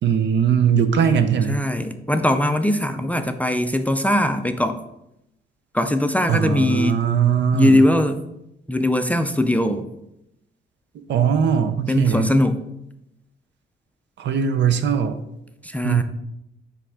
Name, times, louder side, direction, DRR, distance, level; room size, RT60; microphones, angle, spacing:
voice 1, 0.0-1.6 6.3-7.8 11.1-12.3 14.2-15.2 15.8-16.0, right 7 dB, 65° right, 10 dB, 0.6 m, -20 dB
voice 2, 1.5-4.8 5.7-7.0 7.5-8.2 8.7-9.9 11.9-12.6 15.6-16.0, left 1 dB, 5° left, 8 dB, 0.4 m, -20 dB
5.9 x 4.8 x 3.5 m, 0.85 s
cardioid pair, 90°, 20 cm